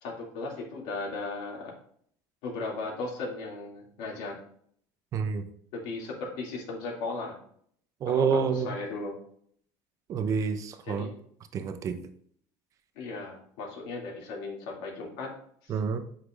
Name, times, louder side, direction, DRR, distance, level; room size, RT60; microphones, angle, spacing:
voice 1, 0.0-1.7 2.4-4.4 5.7-7.4 8.1-9.1 10.9-11.1 13.0-15.3 15.6-15.7, left 3 dB, 70° left, -2 dB, 2.4 m, -36 dB
voice 2, 5.1-5.5 8.0-8.7 10.1-11.1 11.5-12.0 15.7-16.0, right 6 dB, 35° right, 9 dB, 0.7 m, -28 dB
8.2 x 5.8 x 2.5 m, 0.62 s
cardioid pair, 145°, 9 cm